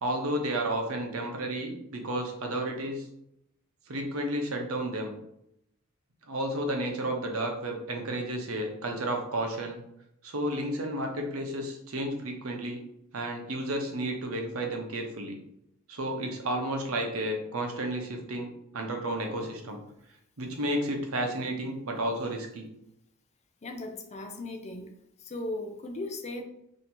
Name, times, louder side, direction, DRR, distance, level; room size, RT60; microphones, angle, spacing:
voice 1, 0.0-3.1 3.9-5.1 6.3-9.8 10.2-12.8 13.1-15.4 15.9-19.8 20.4-22.7, right 1 dB, 80° right, 2 dB, 0.8 m, -32 dB
voice 2, 23.6-24.9 25.2-26.4, left 2 dB, 30° left, 5 dB, 0.5 m, -37 dB
2.8 x 2.7 x 4.4 m, 0.79 s
head